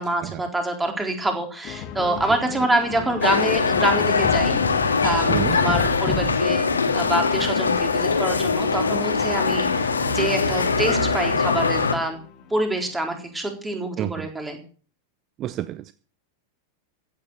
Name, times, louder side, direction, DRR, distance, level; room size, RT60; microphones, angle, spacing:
voice 1, 0.0-4.6 5.0-12.2 12.5-14.6, right 1 dB, 10° right, 4.0 m, -26 dB
sound 1, 1.6-6.8 8.0-12.9, left 5 dB, 40° left, 1.8 m, -33 dB
sound 2, 3.2-12.0, left 4 dB, 75° left, 1.8 m, -22 dB
voice 2, 5.3-5.6 14.0-14.3 15.4-15.9, right 12 dB, 35° right, 0.6 m, -29 dB
15.5 x 9.4 x 6.7 m
figure-of-eight pair, 90°, 0 cm